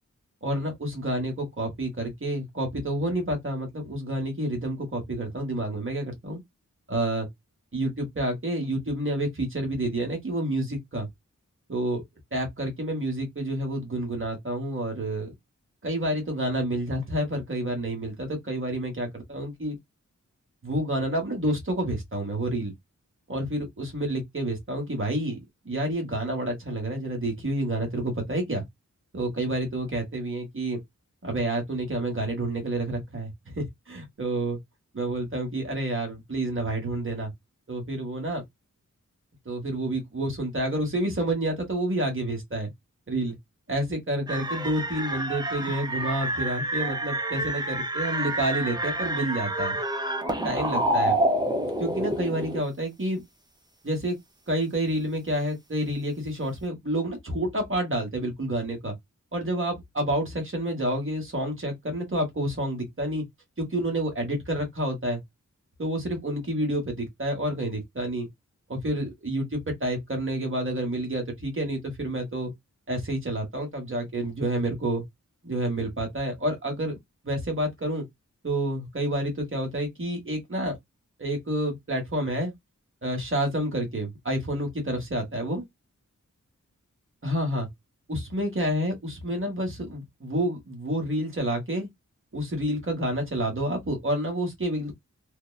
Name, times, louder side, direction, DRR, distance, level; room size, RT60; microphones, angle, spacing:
voice 1, 0.4-6.4 6.9-7.3 7.7-11.1 11.7-12.0 12.3-15.3 15.8-19.8 20.6-22.7 23.3-25.4 25.6-28.6 29.1-30.8 31.2-34.6 34.9-37.3 37.7-38.4 39.4-42.7 43.1-43.4 43.7-49.8 50.4-51.2 51.8-53.2 53.8-54.2 54.5-58.9 59.3-63.2 63.6-65.2 65.8-68.3 68.7-72.5 72.9-75.0 75.4-77.0 77.2-78.0 78.4-80.7 81.2-82.5 83.0-85.6 87.2-87.7 88.1-91.9 92.3-94.9, right 1 dB, 40° right, 1.2 m, -29 dB
sound 1, 44.3-52.6, right 1 dB, 15° right, 0.5 m, -28 dB
2.7 x 2.1 x 2.3 m
wide cardioid pair, 80°, 31 cm